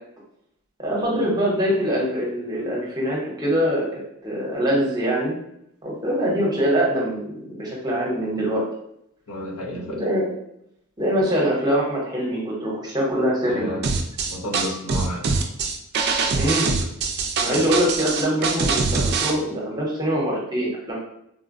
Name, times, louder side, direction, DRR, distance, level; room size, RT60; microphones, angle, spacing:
voice 1, 0.8-3.9 4.2-5.4 5.8-8.6 9.9-10.3 11.0-13.7 16.2-16.8 17.4-21.0, equal, 20° right, -4 dB, 0.8 m, -23 dB
voice 2, 9.3-10.0 13.5-13.8 14.3-15.2 17.5-17.8, equal, 90° left, -1 dB, 0.7 m, -31 dB
sound 1, 13.8-19.3, right 4 dB, 45° right, 0.3 m, -23 dB
3.8 x 2.1 x 2.5 m, 0.76 s
head